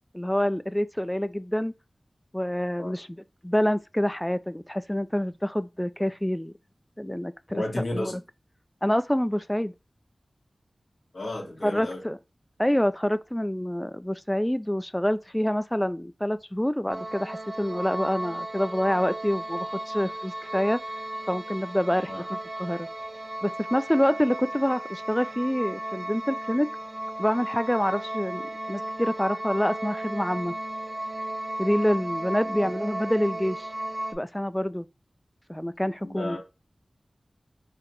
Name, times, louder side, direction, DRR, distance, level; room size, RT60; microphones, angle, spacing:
voice 1, 0.1-1.7 2.3-6.5 7.0-8.2 8.8-9.7 11.6-12.2 12.6-20.8 21.3-22.9 23.4-26.7 27.2-28.4 28.7-30.5 31.6-33.7 34.1-34.9 35.5-36.4, equal, 10° left, 0.3 m, -27 dB
voice 2, 7.5-8.1 11.1-12.0 22.1-22.2 32.4-32.7 36.0-36.4, left 1 dB, 75° left, 1.6 m, -33 dB
sound 1, 16.9-34.1, right 1 dB, 50° right, 0.6 m, -35 dB
4.9 x 2.1 x 3.0 m
cardioid pair, 40°, 0 cm